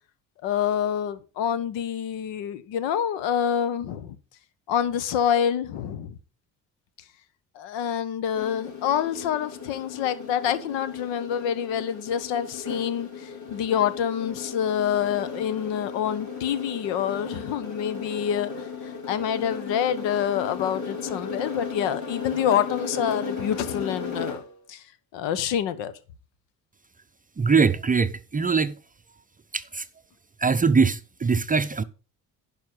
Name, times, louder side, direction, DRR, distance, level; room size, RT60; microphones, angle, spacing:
voice 1, 0.4-4.2 4.7-6.2 7.5-24.4 24.7-24.8 25.1-25.9, left 9 dB, 65° left, 1.1 m, -27 dB
sound 1, 8.3-24.5, left 5 dB, 40° left, 4.5 m, -35 dB
voice 2, 27.4-28.7 29.5-29.8 30.4-31.8, right 5 dB, 20° right, 0.6 m, -22 dB
10.5 x 5.5 x 5.6 m
hypercardioid pair, 50°, 47 cm